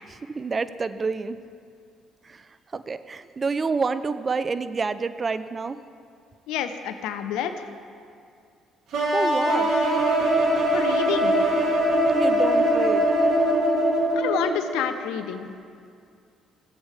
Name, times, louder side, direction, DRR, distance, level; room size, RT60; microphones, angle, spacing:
voice 1, 0.1-1.4 2.7-5.8 9.1-9.7 12.1-13.1, right 4 dB, 35° right, 13 dB, 0.5 m, -28 dB
voice 2, 6.5-7.6 10.7-11.3 14.2-15.5, left 9 dB, 75° left, 9 dB, 0.7 m, -28 dB
sound 1, 8.9-14.7, right 1 dB, 65° right, 1.7 m, -21 dB
17.0 x 8.1 x 3.4 m, 2.4 s
hypercardioid pair, 55°, 0 cm